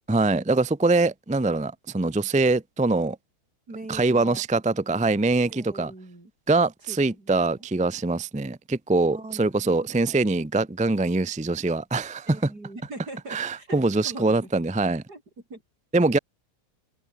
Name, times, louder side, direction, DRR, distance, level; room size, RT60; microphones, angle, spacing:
voice 1, 0.1-3.2 3.9-5.9 6.5-12.5 13.3-15.0 15.9-16.2, right 3 dB, 10° right, 0.5 m, -23 dB
voice 2, 3.7-4.4 5.5-6.3 6.9-7.7 9.1-10.2 12.3-14.5 15.1-15.2 15.5-15.6, right 2 dB, 80° right, 7.4 m, -42 dB
omnidirectional pair, 1.7 m